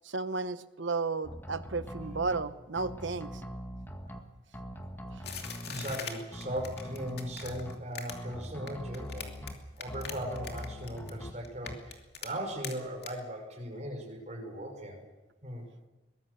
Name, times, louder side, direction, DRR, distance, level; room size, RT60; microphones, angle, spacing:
voice 1, 0.0-3.3, right 4 dB, 75° right, 12 dB, 1.1 m, -33 dB
sound 1, 1.2-2.4 2.8-4.2 4.5-6.0 6.3-7.8 8.1-9.5 9.9-11.3 11.6-11.8, equal, 10° left, 1.8 m, -42 dB
sound 2, 5.2-9.5 9.8-11.2 11.4-12.3 12.6-12.7 13.0-13.1, left 7 dB, 55° left, 2.7 m, -41 dB
voice 2, 5.6-9.3 9.8-15.0 15.4-15.6, equal, 35° right, 3 dB, 5.3 m, -38 dB
23.0 x 20.0 x 6.8 m, 1.1 s
head